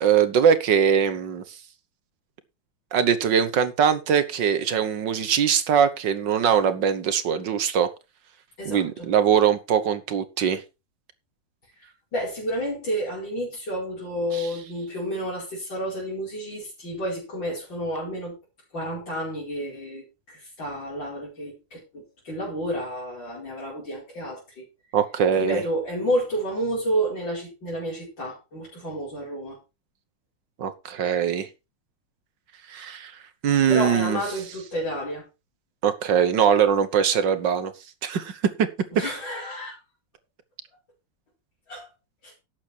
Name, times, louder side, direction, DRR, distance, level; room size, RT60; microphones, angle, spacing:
voice 1, 0.0-1.4 2.9-7.9 8.7-10.6 24.9-25.6 30.6-31.5 32.7-33.1 33.4-34.2 35.8-37.7 38.0-38.7 39.0-39.1, right 8 dB, 70° right, 13 dB, 1.8 m, -22 dB
voice 2, 8.6-9.1 11.8-18.4 18.7-24.6 25.4-29.6 33.7-35.2 38.9-39.8 41.7-41.9 42.2-42.3, equal, 70° left, -5 dB, 5.6 m, -30 dB
12.0 x 8.4 x 4.5 m, 0.27 s
omnidirectional pair, 2.1 m